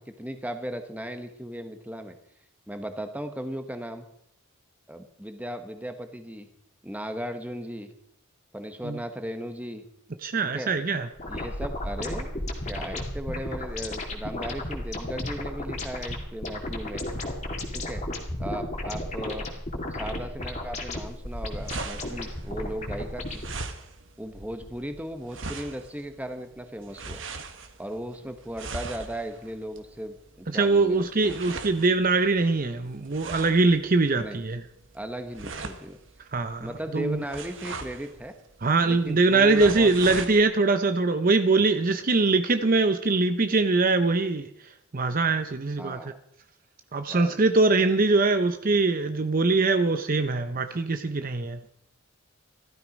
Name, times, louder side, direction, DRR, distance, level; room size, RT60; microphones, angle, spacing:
voice 1, 0.0-2.2 2.7-4.1 4.9-6.5 6.8-7.9 8.5-9.8 10.5-10.8 11.3-17.0 17.7-18.0 18.4-19.5 19.9-23.4 24.2-27.2 27.8-31.4 34.2-34.4 34.9-36.0 36.6-38.3 38.8-40.3 45.8-46.2 47.1-47.4, equal, 5° right, 7 dB, 1.2 m, -36 dB
voice 2, 10.2-11.1 30.5-34.6 36.3-37.2 38.6-44.5 44.9-46.0 46.9-51.6, right 3 dB, 40° right, 9 dB, 0.7 m, -22 dB
sound 1, 11.2-23.5, left 1 dB, 30° left, 2.4 m, -34 dB
sound 2, 21.0-40.4, right 3 dB, 60° right, 1.4 m, -41 dB
15.5 x 13.0 x 5.2 m, 0.71 s
head